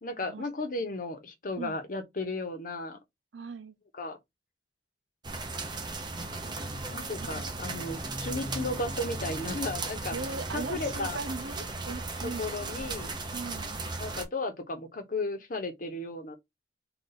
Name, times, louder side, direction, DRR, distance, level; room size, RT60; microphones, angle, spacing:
voice 1, 0.0-3.0 3.9-4.2 6.9-10.1 10.5-11.2 12.2-13.1 14.0-16.4, left 2 dB, 50° left, 1.0 m, -34 dB
voice 2, 3.3-3.8 6.4-6.7 7.3-7.5 10.1-12.6 13.3-13.8, right 4 dB, 85° right, 0.6 m, -39 dB
sound 1, 5.2-14.3, right 3 dB, 25° right, 0.8 m, -36 dB
3.9 x 2.5 x 4.0 m
head